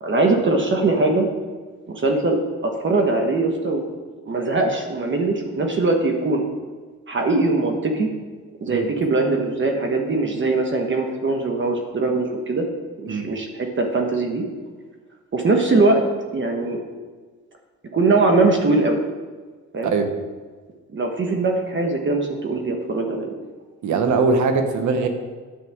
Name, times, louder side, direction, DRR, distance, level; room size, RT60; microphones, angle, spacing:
voice 1, 0.0-1.3 1.9-3.8 4.3-6.4 7.1-8.1 8.6-12.6 13.0-14.4 15.3-16.0 16.3-16.8 17.9-19.0 19.7-19.9 20.9-23.3, right 3 dB, 40° right, 3 dB, 1.2 m, -21 dB
voice 2, 23.8-25.1, right 4 dB, 75° right, 6 dB, 1.2 m, -21 dB
10.0 x 7.5 x 3.6 m, 1.4 s
cardioid pair, 90°, 30 cm